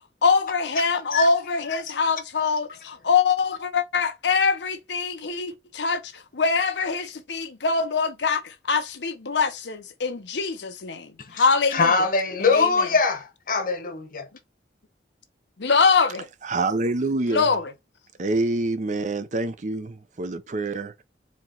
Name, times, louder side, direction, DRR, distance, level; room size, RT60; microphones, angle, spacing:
voice 1, 0.2-12.1 12.4-12.9 15.6-16.3 17.3-17.7, left 5 dB, 85° left, 0.8 m, -24 dB
voice 2, 11.7-14.3, left 4 dB, 50° left, 1.0 m, -22 dB
voice 3, 16.4-17.5 18.2-21.0, right 2 dB, 45° right, 0.6 m, -26 dB
4.4 x 3.0 x 3.9 m
head